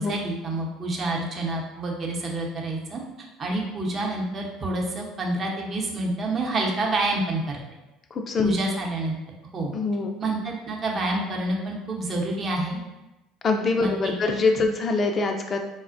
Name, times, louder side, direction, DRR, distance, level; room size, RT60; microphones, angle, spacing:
voice 1, 0.0-7.6 8.4-9.1 9.5-9.7 10.2-12.8 13.8-14.1, right 2 dB, 40° right, -1 dB, 0.7 m, -28 dB
voice 2, 8.1-8.6 9.7-10.1 13.4-15.6, left 3 dB, 40° left, 3 dB, 0.3 m, -24 dB
4.1 x 2.1 x 2.5 m, 1.0 s
hypercardioid pair, 75°, 0 cm